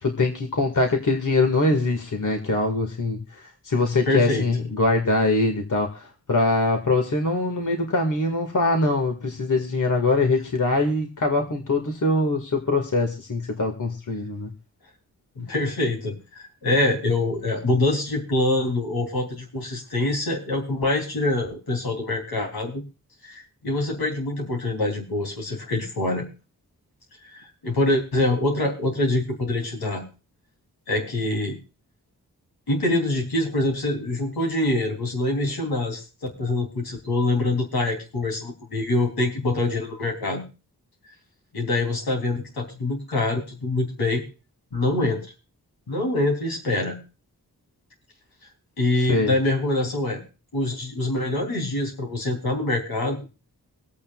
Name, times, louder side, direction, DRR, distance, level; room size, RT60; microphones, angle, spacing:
voice 1, 0.0-14.5 49.1-49.3, left 2 dB, 55° left, 3 dB, 2.1 m, -23 dB
voice 2, 4.0-4.5 15.3-22.8 23.2-26.2 27.3-30.1 30.9-31.6 32.7-40.4 41.5-44.2 44.7-45.2 45.9-47.0 48.8-50.2 50.5-53.2, left 2 dB, 85° left, 1 dB, 3.4 m, -25 dB
25.0 x 8.5 x 2.4 m, 0.31 s
cardioid pair, 50°, 36 cm